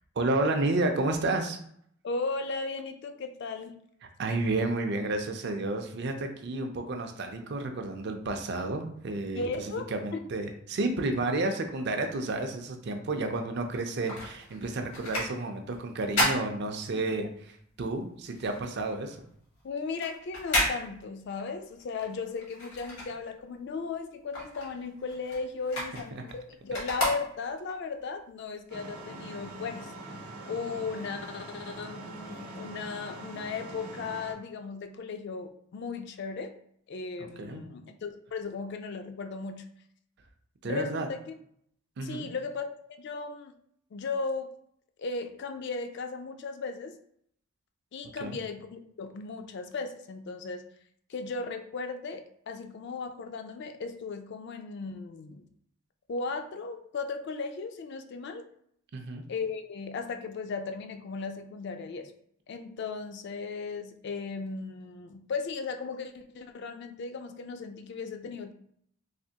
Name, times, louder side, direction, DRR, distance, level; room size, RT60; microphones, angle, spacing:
voice 1, 0.2-1.6 4.2-17.3 17.8-19.2 26.1-26.2 37.2-37.6 40.6-41.1 42.0-42.3 48.2-48.4 58.9-59.2, right 2 dB, 50° right, 5 dB, 0.4 m, -31 dB
voice 2, 2.0-3.7 9.3-10.2 19.6-29.9 30.5-36.5 36.9-39.7 40.6-41.2 42.0-43.5 43.9-44.5 45.0-46.9 47.9-50.6 51.1-55.5 56.1-58.5 59.3-62.1 62.5-68.5, left 4 dB, 50° left, 7 dB, 0.3 m, -36 dB
sound 1, 13.6-17.3 17.7-23.7 24.0-27.8 28.3-28.4, left 1 dB, 90° left, 1.4 m, -33 dB
sound 2, 28.7-34.3, right 2 dB, 90° right, 0.8 m, -43 dB
3.3 x 2.9 x 2.7 m, 0.67 s
head